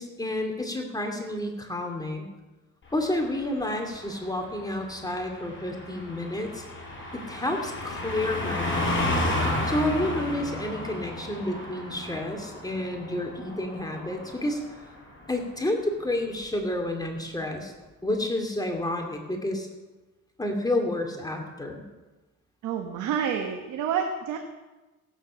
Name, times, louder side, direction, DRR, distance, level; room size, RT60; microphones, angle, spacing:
voice 1, 0.0-2.3 2.9-6.6 7.1-9.1 9.7-14.6 15.3-17.7 18.0-19.7 20.4-21.9, left 1 dB, 10° left, 2 dB, 2.5 m, -30 dB
Car passing by, 2.9-14.8 15.1-15.4, left 1 dB, 40° left, 5.7 m, -33 dB
voice 2, 22.6-24.4, right 7 dB, 90° right, 4 dB, 1.4 m, -28 dB
17.0 x 9.2 x 6.3 m, 1.1 s
cardioid pair, 90°, 30 cm